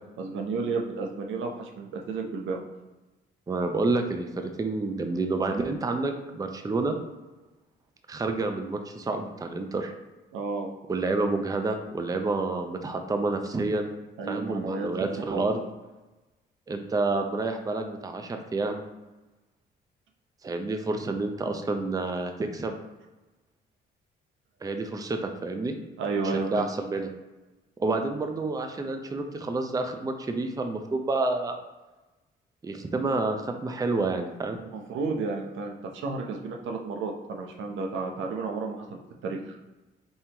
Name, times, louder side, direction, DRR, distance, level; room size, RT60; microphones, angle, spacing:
voice 1, 0.2-2.6 10.3-10.7 14.2-14.9 15.1-15.5 26.0-26.7 27.9-28.0 34.6-39.6, right 4 dB, 75° right, 2 dB, 0.7 m, -32 dB
voice 2, 3.5-7.0 8.1-9.9 10.9-13.9 14.3-15.6 16.7-18.8 20.4-22.7 24.6-25.8 26.2-27.1 27.8-31.6 32.6-34.6, right 3 dB, 20° right, 5 dB, 0.5 m, -29 dB
5.5 x 2.9 x 2.9 m, 1.1 s
cardioid pair, 90°, 20 cm